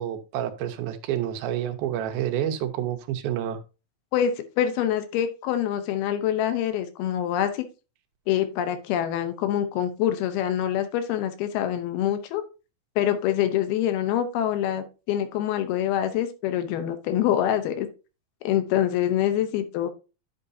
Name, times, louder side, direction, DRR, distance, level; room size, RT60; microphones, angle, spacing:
voice 1, 0.0-3.6, right 11 dB, 80° right, 7 dB, 2.7 m, -29 dB
voice 2, 4.1-7.7 8.3-12.4 13.0-17.9 18.4-19.9, left 10 dB, 85° left, 10 dB, 2.8 m, -25 dB
10.5 x 6.6 x 2.7 m, 0.31 s
omnidirectional pair, 4.4 m